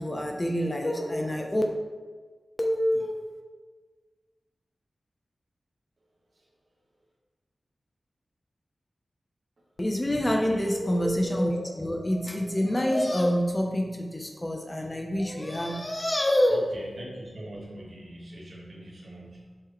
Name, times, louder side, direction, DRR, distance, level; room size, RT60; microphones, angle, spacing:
voice 1, 0.0-1.6 2.6-3.2 9.8-16.6, equal, 20° left, 2 dB, 0.7 m, -26 dB
voice 2, 10.1-10.8 16.5-19.6, right 1 dB, 60° right, -3 dB, 1.5 m, -42 dB
7.4 x 4.5 x 3.1 m, 1.4 s
wide cardioid pair, 110°, 0 cm